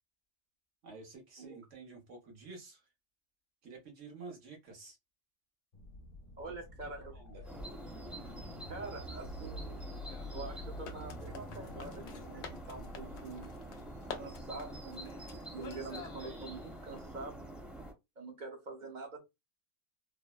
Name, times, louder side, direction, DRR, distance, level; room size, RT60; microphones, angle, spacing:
voice 1, 0.8-2.9 3.6-5.0 6.8-7.4, right 4 dB, 90° right, 1.4 m, -50 dB
sound 1, 5.7-13.3, left 1 dB, 50° left, 1.0 m, -48 dB
voice 2, 6.4-7.1 8.7-9.8 10.3-13.5 14.2-15.2 15.5-17.4 18.2-19.2, right 3 dB, 50° right, 0.7 m, -45 dB
sound 2, 7.4-17.9, right 1 dB, ahead, 0.7 m, -47 dB
sound 3, 9.2-17.0, left 6 dB, 70° left, 0.9 m, -51 dB
3.2 x 2.0 x 2.3 m
omnidirectional pair, 1.2 m